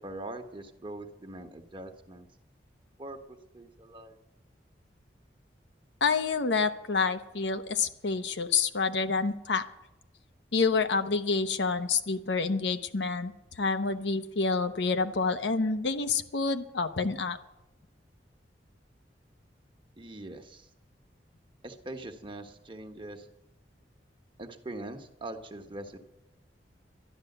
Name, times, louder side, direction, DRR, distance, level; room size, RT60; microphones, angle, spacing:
voice 1, 0.0-2.3 3.0-4.2 20.0-20.7 21.6-23.3 24.4-26.0, right 1 dB, 30° right, 5 dB, 1.3 m, -42 dB
voice 2, 6.0-9.7 10.5-13.3 13.6-17.4, left 4 dB, 85° left, 8 dB, 0.9 m, -28 dB
12.0 x 11.0 x 7.9 m, 0.92 s
head